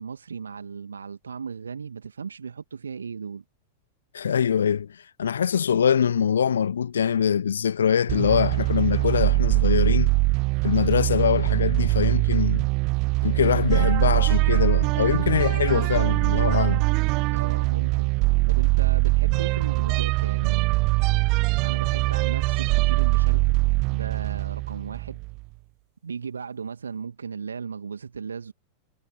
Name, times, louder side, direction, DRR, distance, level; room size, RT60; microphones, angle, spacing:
voice 1, 0.0-3.4 17.3-18.2 18.5-20.7 21.6-23.5 23.9-25.2 26.0-28.5, right 6 dB, 70° right, 1.8 m, -36 dB
voice 2, 4.1-4.9 5.2-10.1 10.6-12.7 13.2-16.8, left 8 dB, 70° left, 1.9 m, -23 dB
sound 1, 8.1-25.4, right 25 dB, 40° right, 0.4 m, -22 dB
figure-of-eight pair, 90°, 0 cm